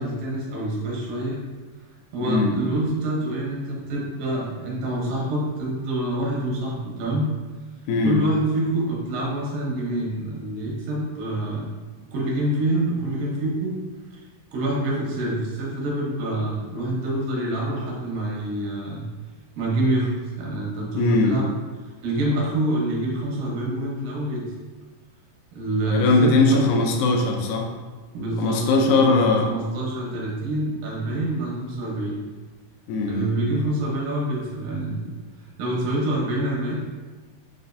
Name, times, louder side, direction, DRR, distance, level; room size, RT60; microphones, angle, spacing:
voice 1, 0.0-1.4 2.1-7.3 8.0-11.6 12.1-13.8 14.5-19.0 19.6-20.1 20.4-21.5 22.0-24.5 25.5-26.7 28.1-32.2 33.1-35.1 35.6-36.7, right 1 dB, 80° right, -4 dB, 2.7 m, -26 dB
voice 2, 2.2-2.5 7.9-8.2 21.0-21.4 25.9-27.7 28.4-29.5 32.9-33.4, left 3 dB, 85° left, 2 dB, 1.7 m, -20 dB
7.3 x 2.5 x 2.5 m, 1.3 s
omnidirectional pair, 4.0 m